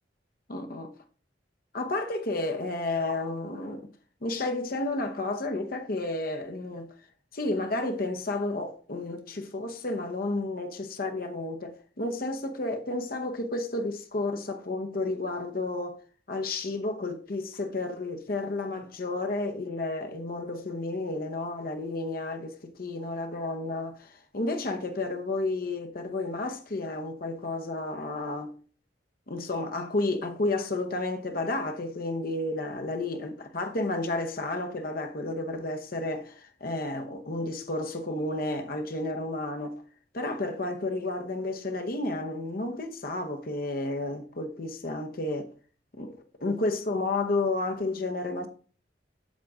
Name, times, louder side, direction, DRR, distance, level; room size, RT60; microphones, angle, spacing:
voice 1, 0.5-0.9 1.7-3.9 4.2-6.9 7.3-16.0 16.3-28.5 29.3-39.8 40.1-45.5 45.9-48.5, left 2 dB, 55° left, 0.9 m, -31 dB
7.5 x 7.4 x 3.6 m
head